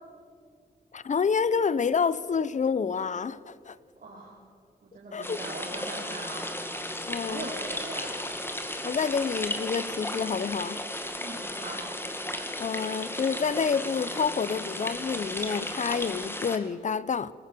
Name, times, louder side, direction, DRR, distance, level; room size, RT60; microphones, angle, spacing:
voice 1, 0.9-3.8 5.1-5.4 7.1-7.5 8.8-10.8 12.6-17.3, left 6 dB, 45° left, 0.7 m, -28 dB
voice 2, 4.0-4.4 4.8-6.5 7.2-8.2 11.2-11.9, right 2 dB, 55° right, 3.9 m, -40 dB
sound 1, 5.2-16.6, left 1 dB, 15° left, 2.2 m, -35 dB
22.0 x 18.5 x 6.8 m
cardioid pair, 80°, 17 cm